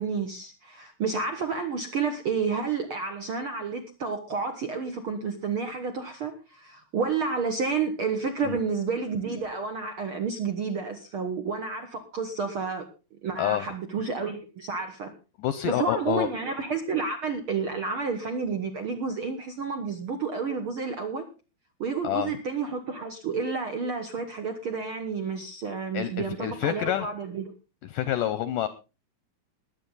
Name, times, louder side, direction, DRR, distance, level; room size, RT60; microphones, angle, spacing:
voice 1, 0.0-12.9 13.2-15.1 15.6-21.2 21.8-27.5, right 5 dB, 75° right, 6 dB, 1.2 m, -30 dB
voice 2, 15.4-16.3 22.0-22.3 25.9-27.1 27.9-28.7, left 11 dB, 75° left, 14 dB, 2.0 m, -27 dB
21.0 x 8.5 x 4.0 m, 0.31 s
omnidirectional pair, 4.5 m